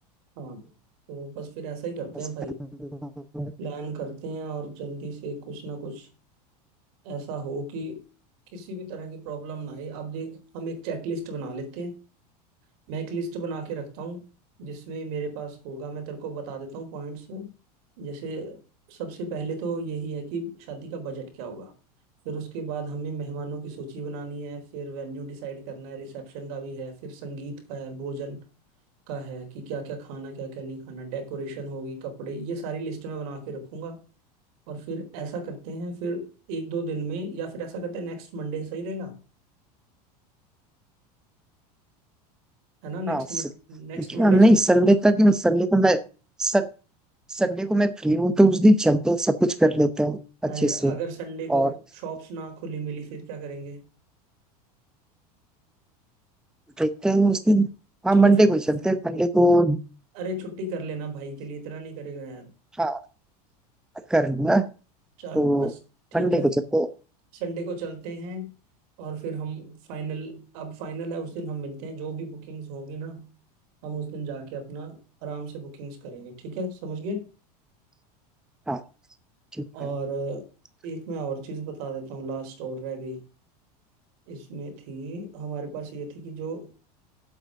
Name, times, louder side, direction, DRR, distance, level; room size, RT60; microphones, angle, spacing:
voice 1, 0.4-0.7 1.1-2.6 3.6-6.1 7.0-8.0 8.5-11.9 12.9-14.2 14.6-17.5 18.0-18.6 18.9-21.7 22.2-28.5 29.1-34.0 34.7-39.2 42.8-44.6 50.4-53.8 58.1-58.6 60.1-62.5 65.2-65.8 66.1-66.5 67.3-68.5 69.0-73.3 73.8-77.2 79.7-80.5 80.8-83.2 84.3-86.7, right 3 dB, 65° right, 6 dB, 4.2 m, -34 dB
voice 2, 43.1-43.4 44.2-46.0 46.4-46.7 47.3-51.0 51.5-51.7 56.8-57.7 58.0-59.8 62.8-63.0 64.1-64.7 65.3-65.7 66.1-66.9 78.7-78.8, right 1 dB, 5° right, 11 dB, 0.8 m, -20 dB
8.1 x 7.9 x 6.4 m, 0.36 s
hypercardioid pair, 105°, 20 cm